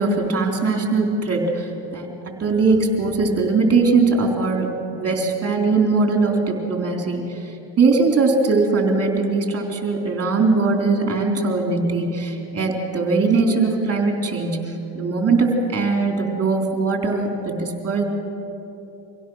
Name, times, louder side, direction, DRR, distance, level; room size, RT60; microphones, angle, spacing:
voice 1, 0.0-7.2 7.8-18.0, right 3 dB, 30° right, 2 dB, 3.6 m, -20 dB
25.0 x 16.5 x 6.4 m, 3.0 s
supercardioid pair, 105°, 50 cm